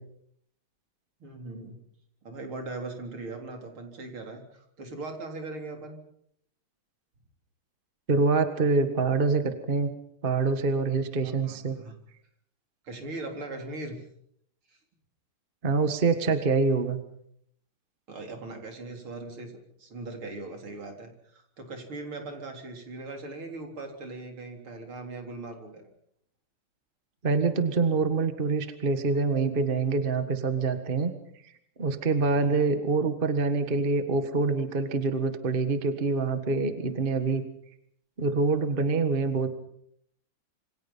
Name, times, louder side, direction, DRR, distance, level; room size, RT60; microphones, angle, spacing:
voice 1, 1.2-1.8 2.2-6.0 11.2-12.0 12.8-14.0 14.7-14.8 18.1-25.9 32.3-32.7, right 2 dB, 70° right, 3 dB, 4.6 m, -40 dB
voice 2, 8.1-9.9 10.2-11.7 15.6-17.0 27.2-31.1 31.8-37.4 38.2-39.5, right 4 dB, 25° right, 8 dB, 1.6 m, -25 dB
27.0 x 24.0 x 5.6 m, 0.70 s
omnidirectional pair, 2.4 m